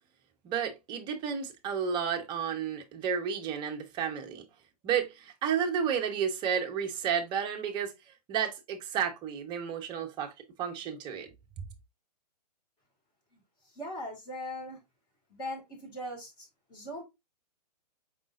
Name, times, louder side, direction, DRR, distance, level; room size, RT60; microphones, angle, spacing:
voice 1, 0.4-4.4 4.8-7.9 8.3-10.3 10.6-11.3, right 7 dB, 20° right, 0.8 m, -31 dB
voice 2, 13.8-14.8 15.3-17.0, left 1 dB, 20° left, 1.9 m, -40 dB
5.0 x 3.7 x 2.4 m
figure-of-eight pair, 120°, 21 cm